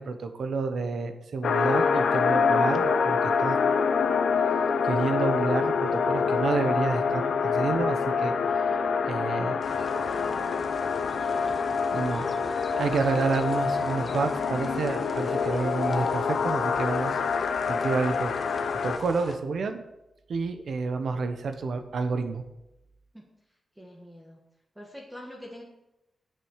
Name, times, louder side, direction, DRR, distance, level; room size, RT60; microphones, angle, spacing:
voice 1, 0.0-3.6 4.8-8.3 9.1-9.6 9.9-10.0 11.9-12.3 12.7-17.2 17.6-18.3 18.8-19.8 20.3-22.4, right 4 dB, 70° right, 7 dB, 1.2 m, -29 dB
sound 1, 1.4-19.0, left 5 dB, 80° left, 0.9 m, -26 dB
sound 2, 9.6-19.4, left 3 dB, 30° left, 0.8 m, -40 dB
voice 2, 10.1-10.7 23.1-23.3 23.8-24.4 24.7-25.6, equal, 5° right, -2 dB, 1.5 m, -45 dB
9.8 x 8.2 x 6.5 m, 0.92 s
wide cardioid pair, 170°, 0 cm